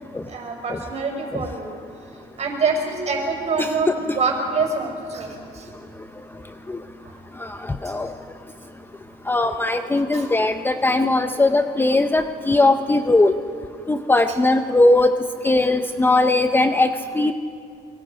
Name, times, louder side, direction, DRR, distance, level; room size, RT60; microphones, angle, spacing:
voice 1, 0.2-1.7 2.4-5.7 7.0-7.1 7.8-8.0 10.1-10.3 14.3-14.4, right 4 dB, 40° right, 2 dB, 5.3 m, -26 dB
voice 2, 7.4-8.1 9.3-13.4 13.9-15.1 15.4-17.3, left 2 dB, 10° left, 8 dB, 0.7 m, -19 dB
25.0 x 23.0 x 5.1 m, 2.4 s
cardioid pair, 110°, 17 cm